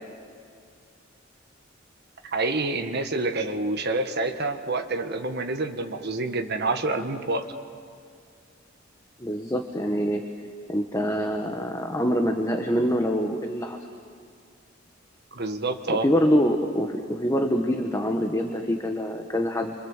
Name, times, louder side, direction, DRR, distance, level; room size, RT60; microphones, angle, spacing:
voice 1, 2.3-7.5 15.3-16.1, right 2 dB, 55° right, 6 dB, 1.6 m, -27 dB
voice 2, 9.2-10.2 10.7-13.8 15.9-19.7, equal, 15° left, 4 dB, 1.3 m, -25 dB
29.5 x 24.5 x 7.4 m, 2.3 s
head